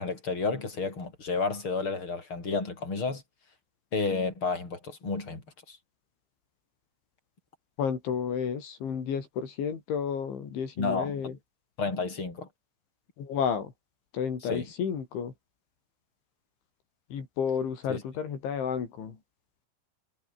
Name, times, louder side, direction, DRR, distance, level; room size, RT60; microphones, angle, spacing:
voice 1, 0.0-3.2 3.9-5.4 5.7-5.8 10.8-11.3 11.8-12.5 14.5-14.7 17.9-18.0, left 4 dB, 25° left, 7.5 m, -31 dB
voice 2, 7.8-11.4 13.2-13.7 14.1-15.3 17.1-19.2, left 7 dB, 80° left, 6.7 m, -31 dB
omnidirectional pair, 5.3 m